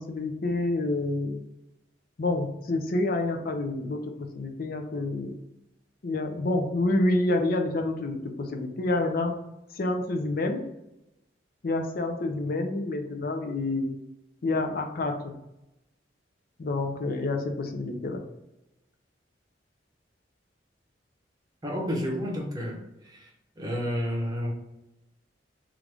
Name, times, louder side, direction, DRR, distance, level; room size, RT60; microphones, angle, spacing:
voice 1, 0.0-1.4 2.2-5.4 6.0-9.4 9.7-10.6 11.6-13.9 14.4-15.3 16.6-18.2, left 2 dB, 50° left, 4 dB, 0.5 m, -28 dB
voice 2, 21.6-23.3 23.6-24.5, equal, 20° right, -1 dB, 0.7 m, -31 dB
3.1 x 2.5 x 3.4 m, 0.90 s
head